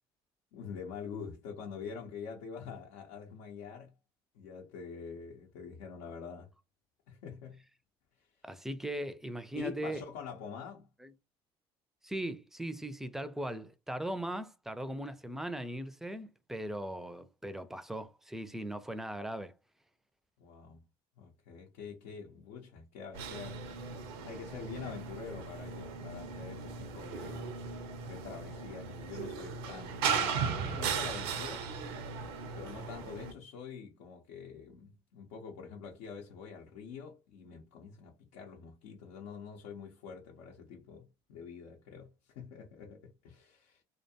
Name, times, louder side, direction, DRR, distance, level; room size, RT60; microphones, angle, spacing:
voice 1, 0.5-3.9 4.3-6.5 7.1-7.6 8.1-8.5 9.5-10.9 20.4-20.8 21.2-23.9 24.2-27.6 28.1-31.7 32.5-43.8, left 6 dB, 80° left, 0.6 m, -46 dB
voice 2, 8.4-10.0 11.0-11.1 12.0-19.5, right 1 dB, 5° right, 0.4 m, -39 dB
sound 1, 23.1-33.3, right 6 dB, 85° right, 0.5 m, -37 dB
2.4 x 2.2 x 2.7 m
supercardioid pair, 75°, 13 cm